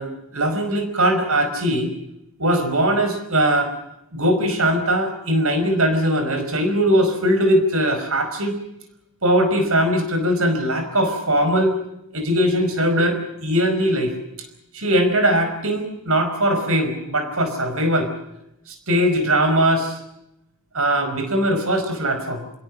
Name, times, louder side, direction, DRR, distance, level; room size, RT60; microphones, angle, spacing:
voice 1, 0.0-1.9 2.4-3.7 4.1-8.6 9.2-11.7 12.1-14.1 14.7-18.1 18.7-20.0 20.7-22.4, right 1 dB, 70° right, 7 dB, 5.1 m, -20 dB
29.0 x 17.5 x 7.5 m, 0.86 s
head